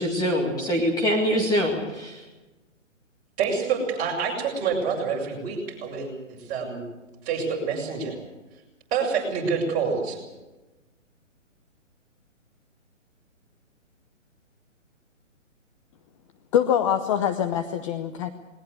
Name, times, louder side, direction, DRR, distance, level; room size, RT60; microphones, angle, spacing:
voice 1, 0.0-2.2, equal, 10° left, -1 dB, 2.2 m, -24 dB
voice 2, 3.4-6.8 7.2-8.2 8.9-10.2, right 5 dB, 20° right, -2 dB, 6.5 m, -27 dB
voice 3, 16.5-18.3, left 9 dB, 25° left, 8 dB, 0.8 m, -24 dB
20.5 x 19.5 x 8.2 m, 1.1 s
hypercardioid pair, 145°, 39 cm